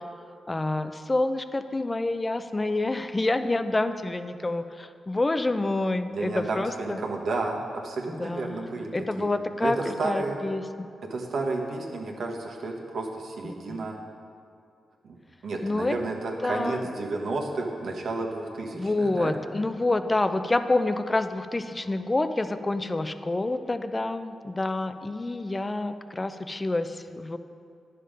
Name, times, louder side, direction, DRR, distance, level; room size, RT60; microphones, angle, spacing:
voice 1, 0.5-7.0 8.1-10.9 13.4-13.9 15.6-15.9 16.4-16.8 18.8-27.4, left 2 dB, 25° left, 10 dB, 0.6 m, -28 dB
voice 2, 6.1-8.9 9.2-9.3 9.6-10.4 11.1-14.0 15.0-15.2 15.4-19.4, right 3 dB, 70° right, 0 dB, 1.3 m, -31 dB
10.0 x 6.7 x 5.2 m, 2.4 s
cardioid pair, 55°, 0 cm